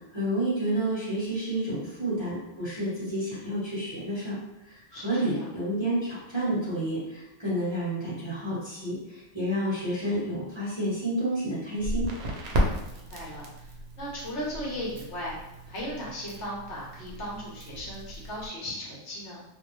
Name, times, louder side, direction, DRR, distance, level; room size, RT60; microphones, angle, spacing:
voice 1, 0.1-4.4 4.6-12.1, right 1 dB, 25° right, -10 dB, 0.9 m, -30 dB
voice 2, 4.9-5.5 12.5-13.7 14.0-15.3 15.7-19.4, equal, 70° left, -6 dB, 1.1 m, -37 dB
Crackle, 11.8-18.5, equal, 70° right, 0.8 m, -34 dB
2.6 x 2.0 x 3.0 m, 0.96 s
omnidirectional pair, 1.2 m